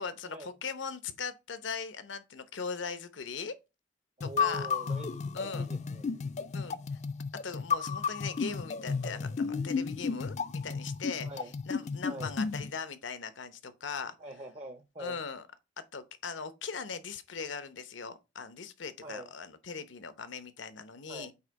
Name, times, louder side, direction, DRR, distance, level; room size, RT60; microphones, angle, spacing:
voice 1, 0.0-3.5 4.2-4.7 5.3-5.7 6.5-6.8 7.4-11.3 11.7-14.1 15.0-15.4 15.8-21.3, left 5 dB, 80° left, 0.8 m, -40 dB
sound 1, 4.2-12.7, left 5 dB, 40° left, 0.4 m, -33 dB
voice 2, 4.2-6.0 11.2-11.5 12.0-12.3 14.2-15.2 19.0-19.3 21.1-21.3, right 1 dB, 35° right, 0.5 m, -44 dB
8.1 x 2.9 x 5.2 m
head